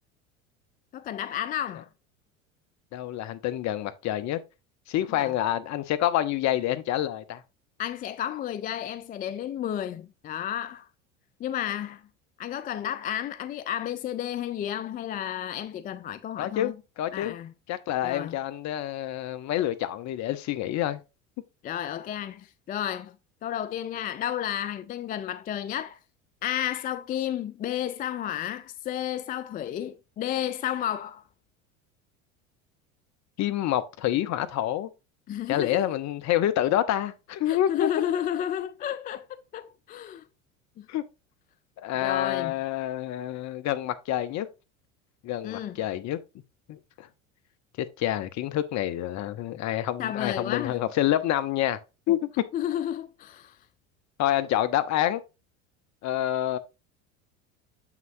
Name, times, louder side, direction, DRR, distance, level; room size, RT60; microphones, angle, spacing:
voice 1, 0.9-1.9 5.1-5.3 7.8-10.9 11.4-12.0 12.4-16.8 17.1-17.5 18.0-18.4 21.6-23.2 23.4-26.0 26.4-31.2 35.3-35.9 37.5-40.3 40.8-40.9 41.9-42.6 45.4-45.8 50.0-50.8 52.5-53.6, left 11 dB, 25° left, 0.3 m, -32 dB
voice 2, 2.9-4.4 4.9-7.4 16.4-17.4 17.7-21.0 33.4-34.9 35.5-37.9 40.9-41.0 41.8-44.5 45.2-46.2 46.7-47.1 47.8-51.8 52.1-52.4 54.2-55.2 56.0-56.6, left 12 dB, 45° left, 0.9 m, -27 dB
7.4 x 5.9 x 2.6 m
hypercardioid pair, 75°, 40 cm